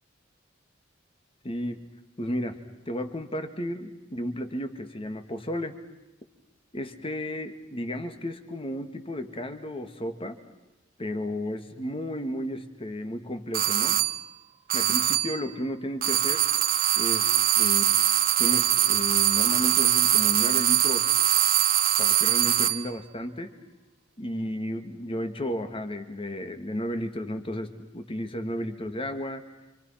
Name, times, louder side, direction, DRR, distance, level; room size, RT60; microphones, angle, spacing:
voice 1, 1.4-1.9 2.2-2.6 2.9-5.8 6.7-10.4 11.0-14.0 14.7-16.4 17.0-17.9 18.4-21.1 22.0-23.6 24.2-29.4, left 1 dB, 30° left, 7 dB, 2.1 m, -33 dB
sound 1, 13.5-14.2 14.7-15.4 16.0-22.9, right 11 dB, 45° right, 1.1 m, -23 dB
29.0 x 26.5 x 5.9 m, 1.0 s
head